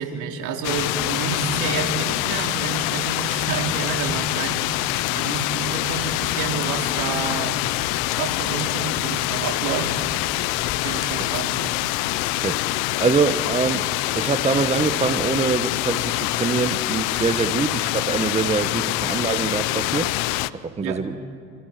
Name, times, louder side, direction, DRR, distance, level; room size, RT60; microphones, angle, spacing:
voice 1, 0.0-7.6 8.2-9.9 10.8-11.7 18.7-18.8 20.8-21.0, right 6 dB, 65° right, 3 dB, 3.4 m, -29 dB
sound 1, 0.6-20.5, left 19 dB, 75° left, 0.8 m, -25 dB
sound 2, 5.7-11.4, left 3 dB, 35° left, 4.9 m, -42 dB
voice 2, 13.0-20.1 20.5-21.2, right 5 dB, 20° right, 10 dB, 1.2 m, -24 dB
29.0 x 26.5 x 5.9 m, 2.4 s
supercardioid pair, 80°, 32 cm